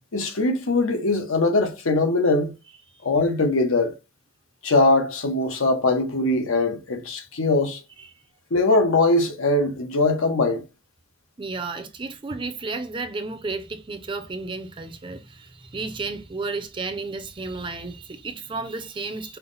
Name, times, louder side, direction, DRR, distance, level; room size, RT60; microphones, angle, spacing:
voice 1, 0.1-2.5 3.0-3.9 4.6-7.8 8.5-10.6, left 2 dB, 80° left, 0.9 m, -21 dB
voice 2, 11.4-19.4, right 3 dB, 25° right, 0.4 m, -32 dB
5.5 x 2.1 x 4.0 m
head